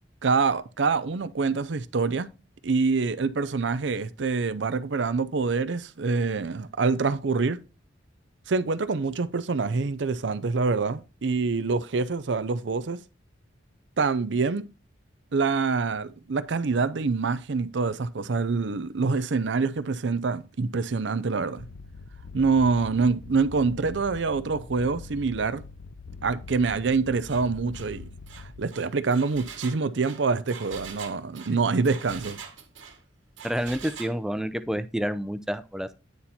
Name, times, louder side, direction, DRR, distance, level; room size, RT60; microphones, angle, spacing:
voice 1, 0.2-2.3 2.6-7.6 8.5-13.0 14.0-14.7 15.3-21.6 22.3-25.6 26.2-28.1 28.6-32.4, right 4 dB, 70° right, 0.6 m, -26 dB
sound 1, 21.6-28.6, left 4 dB, 85° left, 0.5 m, -43 dB
Engine, 27.2-27.4 27.7-27.9 28.3-33.0 33.4-34.2, right 6 dB, 85° right, 1.6 m, -43 dB
voice 2, 33.4-35.9, equal, 5° right, 0.4 m, -29 dB
9.5 x 4.3 x 4.2 m
head